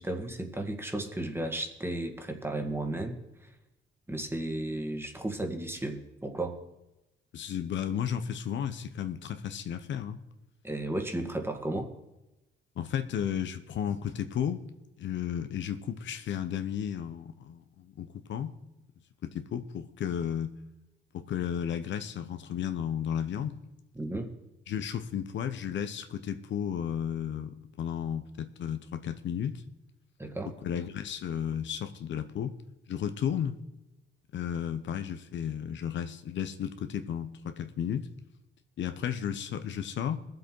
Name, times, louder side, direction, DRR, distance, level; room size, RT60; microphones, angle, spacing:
voice 1, 0.0-3.5 4.1-6.6 10.6-11.9 23.9-24.3 30.2-30.5, right 1 dB, 10° right, 4 dB, 1.8 m, -34 dB
voice 2, 7.3-10.2 12.8-14.6 15.0-18.5 19.2-20.5 21.1-23.5 24.7-29.6 30.6-32.5 32.9-33.6 34.3-38.1 38.8-40.2, left 9 dB, 70° left, 9 dB, 0.9 m, -33 dB
21.5 x 7.7 x 4.6 m, 0.97 s
cardioid pair, 90°, 20 cm